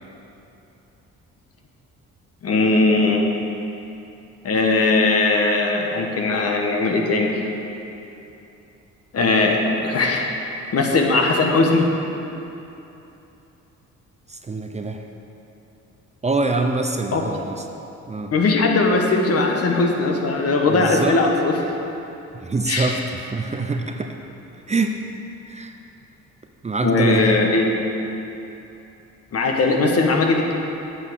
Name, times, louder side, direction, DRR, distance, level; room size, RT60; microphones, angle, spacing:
voice 1, 2.4-3.3 4.4-7.4 9.1-10.3 10.7-11.9 17.1-17.2 18.3-21.5 22.7-22.9 26.8-27.9 29.3-30.5, left 3 dB, 50° left, 1 dB, 1.4 m, -19 dB
voice 2, 14.3-15.0 16.2-17.6 18.1-18.3 20.6-21.2 22.4-24.1 24.7-24.9 25.5-25.7 26.6-27.4, right 3 dB, 20° right, 4 dB, 0.6 m, -24 dB
8.5 x 7.2 x 6.4 m, 2.9 s
cardioid pair, 90°, 30 cm